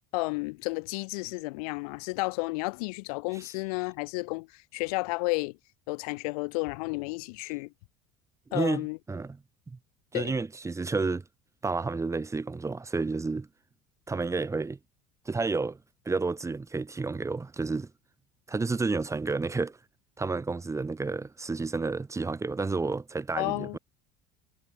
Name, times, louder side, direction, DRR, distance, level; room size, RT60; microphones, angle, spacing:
voice 1, 0.1-4.5 4.7-5.5 5.9-7.7 8.5-9.0 10.1-10.3 23.4-23.8, left 27 dB, 75° left, 0.5 m, -32 dB
voice 2, 8.5-9.4 9.7-9.8 10.1-11.2 11.6-13.5 14.1-14.8 15.3-15.8 16.1-17.9 18.5-19.8 20.2-23.8, right 3 dB, 15° right, 0.9 m, -30 dB
hypercardioid pair, 80°, 19 cm